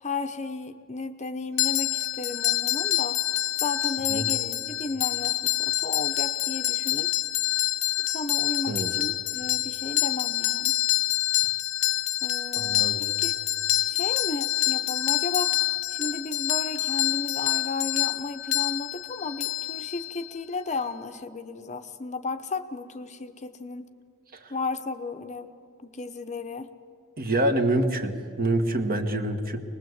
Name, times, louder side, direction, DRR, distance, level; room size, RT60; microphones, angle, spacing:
voice 1, 0.0-3.2 3.6-7.1 8.1-10.8 12.2-13.3 13.8-15.6 15.9-23.9 24.5-25.5 25.8-26.7, left 3 dB, 35° left, 9 dB, 0.9 m, -34 dB
sound 1, 1.6-20.4, left 16 dB, 65° left, 0.7 m, -27 dB
voice 2, 12.5-13.0 24.3-24.5 27.2-29.6, right 1 dB, 40° right, 6 dB, 1.5 m, -26 dB
24.0 x 20.0 x 8.0 m, 2.4 s
head